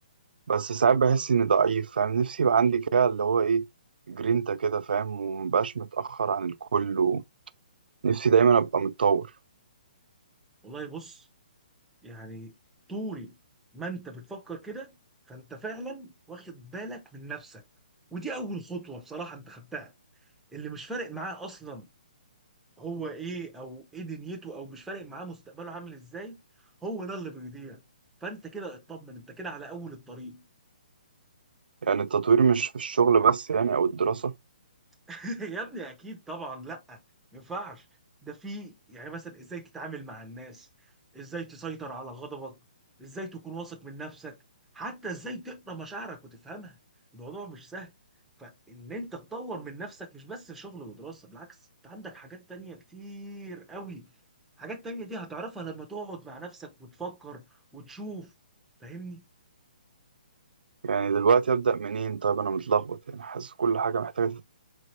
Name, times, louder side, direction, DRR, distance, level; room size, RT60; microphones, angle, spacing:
voice 1, 0.5-3.7 4.1-7.2 8.0-9.3 31.8-34.3 60.8-64.5, right 6 dB, 85° right, 0.4 m, -24 dB
voice 2, 10.6-11.3 12.0-12.5 12.9-13.4 13.7-14.9 15.3-17.6 18.1-19.9 20.5-21.9 22.8-26.4 26.8-27.8 28.2-30.4 35.1-37.0 37.3-37.9 38.2-40.7 41.1-42.6 43.0-44.4 44.7-46.8 47.1-47.9 48.4-51.6 51.8-54.1 54.6-57.4 57.7-58.3 58.8-59.2, right 3 dB, 5° right, 0.4 m, -39 dB
4.2 x 3.1 x 3.1 m
hypercardioid pair, 175°, 5 cm